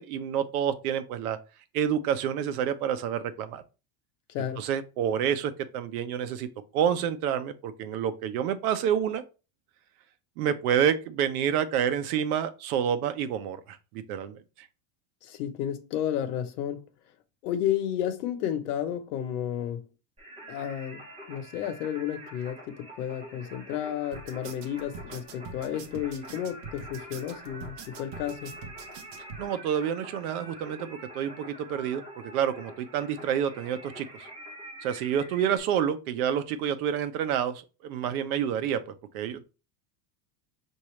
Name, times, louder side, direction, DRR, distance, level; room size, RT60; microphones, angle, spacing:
voice 1, 0.0-1.4 1.7-3.6 4.6-6.5 6.7-9.2 10.4-14.4 29.4-32.0 32.3-34.1 34.8-38.8 39.1-39.4, right 9 dB, 70° right, 0.8 m, -28 dB
voice 2, 4.3-4.6 15.2-16.9 17.4-19.8 20.5-21.0 21.3-28.5, left 10 dB, 85° left, 1.0 m, -32 dB
Singing, 20.2-35.6, right 1 dB, 15° right, 0.9 m, -46 dB
sound 1, 24.1-29.4, right 4 dB, 45° right, 0.8 m, -44 dB
5.9 x 2.7 x 3.1 m
cardioid pair, 175°, 46 cm